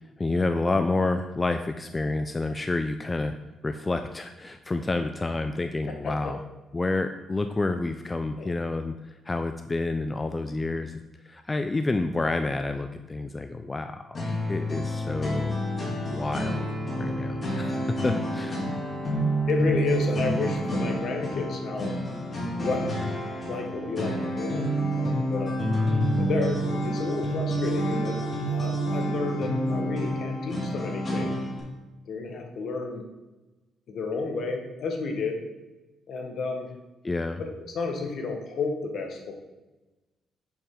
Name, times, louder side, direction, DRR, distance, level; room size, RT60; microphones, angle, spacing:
voice 1, 0.2-3.3 3.6-6.4 6.7-14.2 14.5-15.6 16.0-16.6 17.0-18.6 37.0-37.4, left 2 dB, 20° left, 7 dB, 0.4 m, -29 dB
voice 2, 5.9-6.3 8.4-8.5 19.5-21.9 22.5-22.8 23.4-25.5 26.2-28.2 28.5-31.4 32.1-33.0 33.9-35.4 36.1-36.7 37.4-39.3, left 4 dB, 60° left, 3 dB, 1.3 m, -31 dB
sound 1, 14.1-31.6, equal, 40° left, 2.3 m, -28 dB
7.2 x 5.1 x 3.7 m, 1.1 s
cardioid pair, 90°, 0 cm